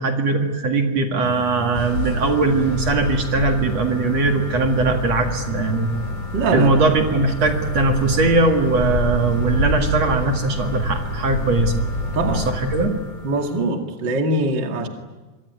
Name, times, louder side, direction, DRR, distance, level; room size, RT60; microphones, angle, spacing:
voice 1, 0.0-5.9 6.5-11.8 12.3-12.9, right 3 dB, 55° right, 3 dB, 3.0 m, -20 dB
sound 1, 1.2-13.7, left 2 dB, 35° left, 5.0 m, -33 dB
sound 2, 1.7-12.9, left 1 dB, 75° left, 8.4 m, -28 dB
voice 2, 6.3-6.8 12.1-12.5 13.2-14.9, right 2 dB, 35° right, 3 dB, 2.6 m, -22 dB
25.0 x 24.5 x 9.5 m, 1.2 s
omnidirectional pair, 3.7 m